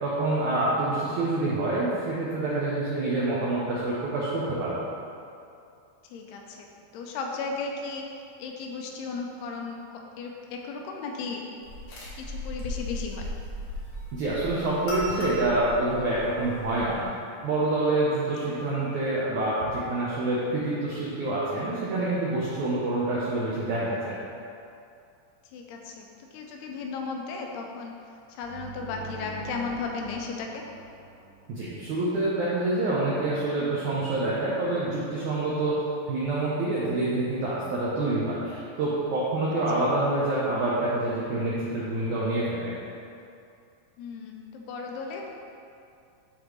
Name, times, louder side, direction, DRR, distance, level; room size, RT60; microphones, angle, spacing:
voice 1, 0.0-4.8 14.1-17.0 17.4-24.2 31.5-35.7 36.1-42.7, right 2 dB, 80° right, -8 dB, 1.7 m, -27 dB
voice 2, 6.0-6.7 6.9-8.1 8.4-9.8 10.2-11.4 12.1-13.3 18.5-18.6 25.5-27.9 28.3-30.6 39.8-39.9 44.0-45.3, left 4 dB, 85° left, 1 dB, 2.6 m, -35 dB
sound 1, 11.6-17.0, left 1 dB, 65° left, 2.3 m, -36 dB
sound 2, 28.4-32.1, right 3 dB, 65° right, 2.4 m, -44 dB
12.0 x 4.1 x 3.1 m, 2.6 s
omnidirectional pair, 4.6 m